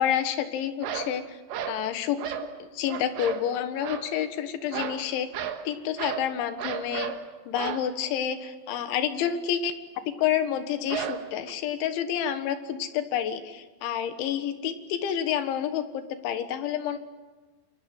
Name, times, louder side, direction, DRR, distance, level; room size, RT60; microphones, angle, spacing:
voice 1, 0.0-1.4 1.7-2.2 2.6-5.3 5.7-7.1 7.5-9.7 10.2-17.0, left 9 dB, 85° left, 9 dB, 3.9 m, -29 dB
sound 1, 0.8-1.2 1.5-1.8 2.2-2.5 2.9-3.5 3.8-4.1 4.7-5.0 5.3-5.6 6.0-6.3 6.6-7.2 7.6-7.9 10.9-11.5, right 8 dB, 75° right, 3.7 m, -33 dB
28.0 x 23.5 x 7.8 m, 1.3 s
omnidirectional pair, 5.3 m